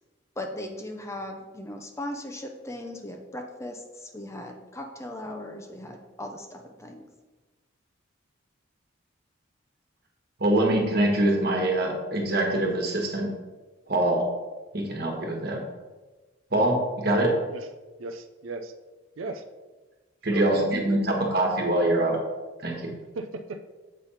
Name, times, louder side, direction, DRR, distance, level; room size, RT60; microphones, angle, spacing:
voice 1, 0.4-7.0, left 1 dB, 15° left, 3 dB, 0.6 m, -38 dB
voice 2, 10.4-13.3 13.9-14.2 14.7-15.6 16.5-17.3 20.2-22.2 22.6-22.9, right 1 dB, 50° right, 1 dB, 1.4 m, -24 dB
voice 3, 18.0-18.7 19.2-19.4 20.3-21.3 23.2-23.6, right 2 dB, 85° right, 7 dB, 0.5 m, -37 dB
7.3 x 3.5 x 5.6 m, 1.2 s
head